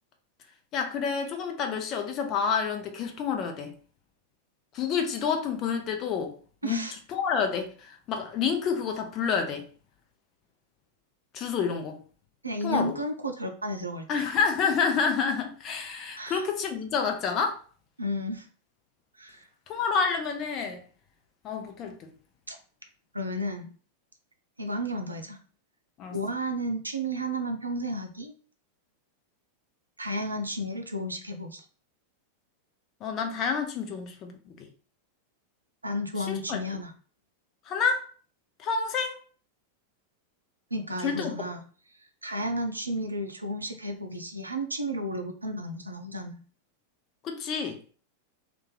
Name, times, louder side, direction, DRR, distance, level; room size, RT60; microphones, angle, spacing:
voice 1, 0.7-3.7 4.7-6.4 6.6-9.7 11.3-12.0 12.6-13.0 14.1-17.6 19.7-20.8 21.4-22.1 26.0-26.2 33.0-34.7 36.2-36.6 37.6-38.1 38.6-39.2 41.0-41.3 47.2-47.8, left 6 dB, 35° left, 0.7 m, -29 dB
voice 2, 6.6-6.9 12.4-14.1 16.2-16.4 18.0-18.5 19.2-19.4 22.5-22.6 23.1-23.7 24.6-25.4 26.1-28.3 30.0-31.6 35.8-36.9 40.7-41.6 42.2-46.4, equal, 80° right, 0.5 m, -32 dB
2.6 x 2.4 x 3.8 m
figure-of-eight pair, 90°, 0 cm